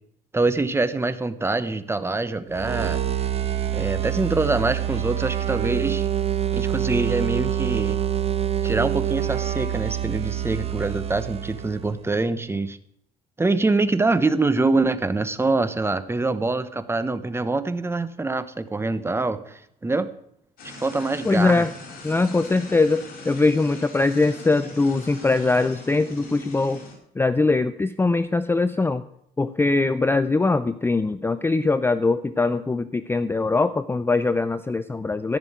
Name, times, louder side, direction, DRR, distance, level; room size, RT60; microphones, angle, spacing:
voice 1, 0.3-3.0 3.7-6.1 6.5-8.0 8.6-12.8 13.4-20.1 20.6-21.7, right 3 dB, 15° right, 12 dB, 1.0 m, -24 dB
sound 1, 2.5-12.0, right 10 dB, 35° right, 1.2 m, -26 dB
sound 2, 20.6-26.9, left 2 dB, 60° left, 4.7 m, -41 dB
voice 2, 21.2-21.7 22.0-26.8 27.2-29.0 29.4-35.4, left 3 dB, 15° left, 13 dB, 0.5 m, -22 dB
15.0 x 6.1 x 9.4 m, 0.72 s
cardioid pair, 110°, 17 cm